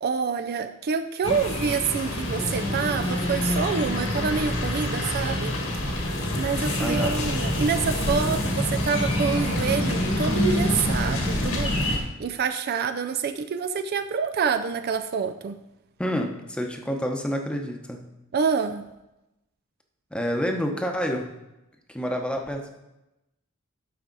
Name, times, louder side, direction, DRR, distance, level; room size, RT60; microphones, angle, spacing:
voice 1, 0.0-5.6 6.4-11.7 12.2-15.6 18.3-18.8, right 6 dB, 50° right, 9 dB, 0.4 m, -27 dB
sound 1, 1.2-12.0, left 1 dB, 75° left, 1.8 m, -26 dB
voice 2, 6.8-7.2 16.0-18.1 20.1-21.3 21.9-22.7, equal, 5° left, 3 dB, 0.8 m, -28 dB
12.0 x 4.7 x 4.0 m, 0.95 s
head